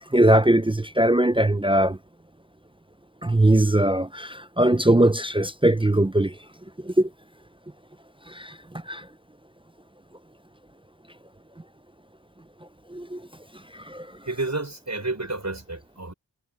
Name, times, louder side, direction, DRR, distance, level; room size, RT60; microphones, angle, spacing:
voice 1, 0.1-2.0 3.2-6.3 6.8-7.1 8.3-8.5 8.9-9.0 12.9-13.2 13.9-14.1, right 1 dB, 15° right, 0.4 m, -20 dB
voice 2, 14.2-16.1, right 2 dB, 40° right, 6.3 m, -30 dB
wide cardioid pair, 40°, 43 cm